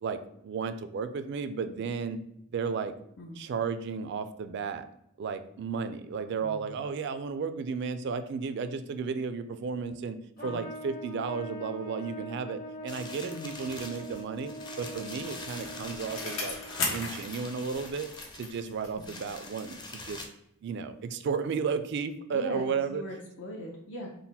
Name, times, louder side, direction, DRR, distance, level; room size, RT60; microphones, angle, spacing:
voice 1, 0.0-2.2 2.5-2.9 3.4-4.9 5.2-10.2 10.4-16.6 16.9-20.3 20.6-23.0, right 5 dB, 55° right, 11 dB, 0.3 m, -33 dB
voice 2, 6.4-7.0 10.4-10.6 13.2-13.6 18.9-19.1 22.3-24.1, left 1 dB, 65° left, -1 dB, 0.6 m, -41 dB
Trumpet, 10.4-16.9, equal, 45° left, 1.0 m, -43 dB
sound 1, 12.9-20.3, left 2 dB, 20° left, 0.5 m, -44 dB
Bicycle, 14.5-19.4 19.7-19.8, left 3 dB, 80° left, 1.0 m, -38 dB
3.9 x 2.1 x 4.0 m, 0.77 s
head